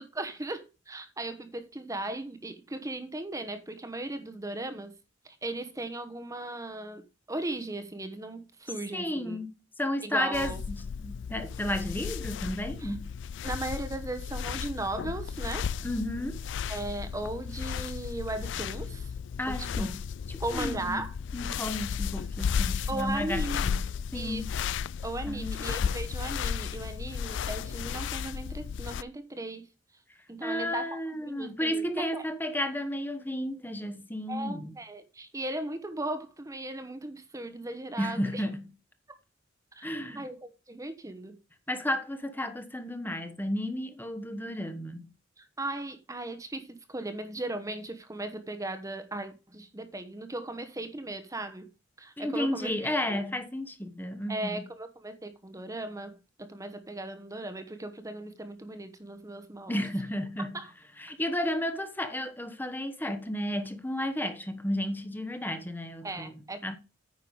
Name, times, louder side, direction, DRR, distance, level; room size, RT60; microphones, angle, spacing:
voice 1, 0.0-4.9 5.2-9.4 10.0-10.6 12.8-12.9 13.4-15.7 16.7-19.1 19.5-19.9 20.4-21.1 22.9-23.7 24.1-24.7 25.0-29.7 30.3-31.0 31.3-32.2 34.3-38.4 39.7-39.9 40.1-41.4 45.4-51.7 52.0-53.2 54.3-59.9 60.5-60.7 66.0-66.6, right 2 dB, 15° right, 1.0 m, -37 dB
voice 2, 8.9-9.5 9.8-13.1 15.8-16.4 19.4-20.0 20.3-21.0 21.3-23.8 24.1-24.5 25.3-25.9 30.4-34.7 38.0-38.7 39.8-40.2 41.7-45.1 52.2-54.5 59.7-60.5 61.0-66.3 66.6-66.8, left 1 dB, 10° left, 1.1 m, -33 dB
sound 1, 10.3-29.0, left 7 dB, 65° left, 0.4 m, -34 dB
9.4 x 5.8 x 4.8 m
head